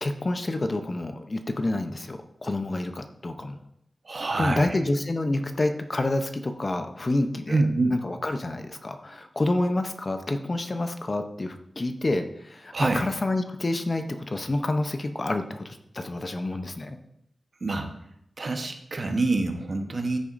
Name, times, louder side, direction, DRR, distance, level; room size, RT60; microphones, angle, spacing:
voice 1, 0.0-3.6 4.4-7.6 7.9-17.0, left 2 dB, 30° left, 7 dB, 0.7 m, -28 dB
voice 2, 4.0-4.7 7.5-8.0 12.7-13.0 17.6-17.9 18.4-20.2, right 2 dB, 45° right, 5 dB, 1.0 m, -26 dB
13.5 x 6.9 x 2.6 m, 0.76 s
wide cardioid pair, 125°, 0 cm